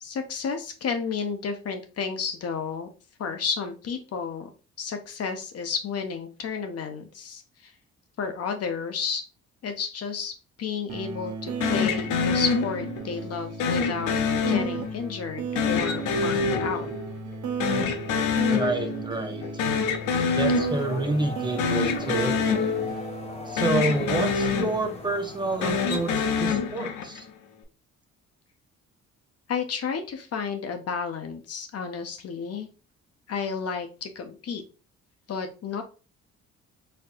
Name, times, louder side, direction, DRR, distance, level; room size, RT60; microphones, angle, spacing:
voice 1, 0.0-2.9 3.2-4.5 4.8-7.7 8.2-9.2 9.6-10.3 10.6-14.2 14.4-16.9 20.2-20.3 29.5-32.7 33.3-34.6 35.3-35.8, left 6 dB, 55° left, 6 dB, 0.7 m, -32 dB
sound 1, 10.9-26.0, right 5 dB, 70° right, 1.0 m, -36 dB
sound 2, 11.6-13.1 13.6-15.1 15.6-17.3 17.6-19.1 19.4-21.1 21.5-23.3 23.6-25.1 25.5-27.3, left 5 dB, 85° left, 0.7 m, -26 dB
voice 2, 18.5-19.7 20.4-22.8 23.5-27.2, right 2 dB, 15° right, 4 dB, 0.7 m, -29 dB
sound 3, 20.3-26.3, left 3 dB, 20° left, 0.9 m, -41 dB
4.3 x 2.7 x 2.5 m, 0.34 s
cardioid pair, 90°, 30 cm